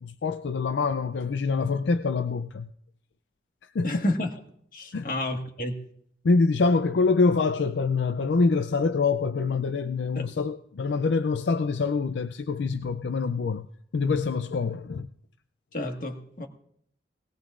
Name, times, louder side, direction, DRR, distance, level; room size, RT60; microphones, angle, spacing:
voice 1, 0.0-2.7 3.6-4.1 4.9-5.1 6.2-13.7 13.9-15.1, left 4 dB, 80° left, 0.4 m, -25 dB
voice 2, 3.8-4.3 4.7-5.8 10.1-10.3 15.7-16.5, left 1 dB, 50° left, 1.7 m, -30 dB
19.5 x 18.5 x 2.5 m
head